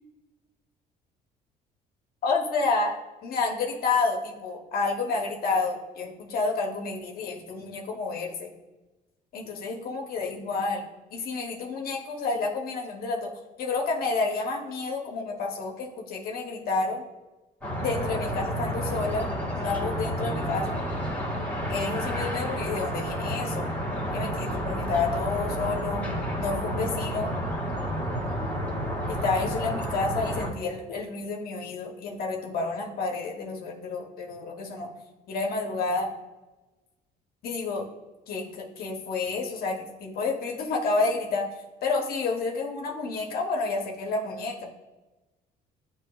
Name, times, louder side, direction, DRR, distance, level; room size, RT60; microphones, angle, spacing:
voice 1, 2.2-8.5 9.3-10.8 11.1-13.3 13.6-17.0 17.8-19.3 19.5-20.7 21.7-23.7 24.1-26.1 26.4-27.3 29.1-34.9 35.3-36.1 37.4-37.9 38.3-41.5 41.8-44.6, left 3 dB, 60° left, 1 dB, 0.8 m, -29 dB
sound 1, 17.6-30.5, equal, 10° left, 1.2 m, -30 dB
8.1 x 2.8 x 2.3 m, 1.1 s
cardioid pair, 110°, 17 cm